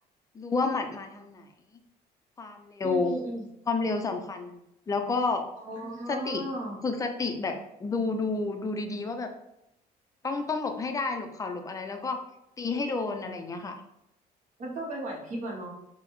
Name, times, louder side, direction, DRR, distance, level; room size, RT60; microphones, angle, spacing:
voice 1, 0.3-1.5 2.4-3.1 3.7-4.6 4.9-5.4 6.1-6.4 6.8-7.5 7.8-9.3 10.2-12.2 12.6-13.8, left 4 dB, 20° left, 5 dB, 0.4 m, -30 dB
voice 2, 2.8-3.5 5.6-6.8 14.6-15.8, right 1 dB, 50° right, -1 dB, 0.9 m, -35 dB
3.8 x 2.0 x 3.0 m, 0.82 s
cardioid pair, 110°, 17 cm